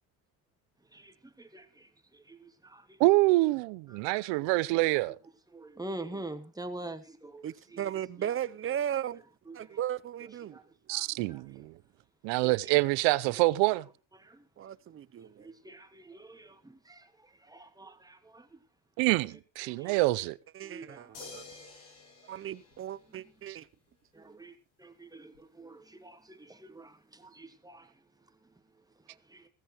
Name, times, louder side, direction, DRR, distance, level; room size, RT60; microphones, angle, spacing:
voice 1, 0.9-3.0 4.0-4.2 4.8-5.0 5.5-7.9 8.2-8.3 9.5-9.8 10.2-10.6 10.9-11.7 12.4-12.7 14.2-14.5 15.4-18.6 19.3-19.4 19.6-20.1 20.6-21.2 24.1-27.9 29.1-29.5, right 2 dB, 10° right, 1.4 m, -46 dB
voice 2, 3.0-5.2 10.9-11.7 12.2-13.9 19.0-20.4, right 21 dB, 85° right, 0.7 m, -26 dB
voice 3, 7.4-9.2 9.5-10.6 14.6-15.5 20.5-21.4 22.3-23.7, right 10 dB, 30° right, 0.6 m, -36 dB
sound 1, 21.1-23.6 25.3-25.4, left 4 dB, 75° left, 7.8 m, -50 dB
15.5 x 14.5 x 3.0 m
cardioid pair, 130°, 43 cm